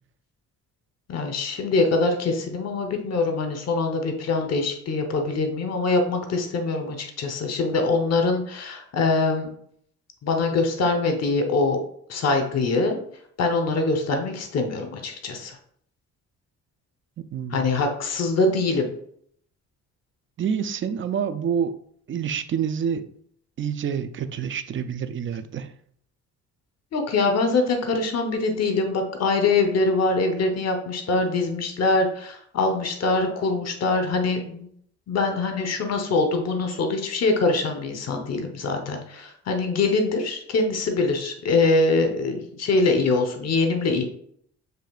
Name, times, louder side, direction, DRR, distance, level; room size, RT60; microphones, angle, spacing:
voice 1, 1.1-9.5 10.2-11.8 12.1-13.0 13.4-15.6 17.5-18.9 26.9-34.7 35.1-44.0, left 3 dB, 55° left, 5 dB, 1.0 m, -23 dB
voice 2, 17.3-17.7 20.4-21.7 22.1-23.1 23.6-25.7, right 7 dB, 40° right, 10 dB, 0.5 m, -27 dB
6.6 x 3.3 x 2.4 m, 0.65 s
cardioid pair, 90°, 30 cm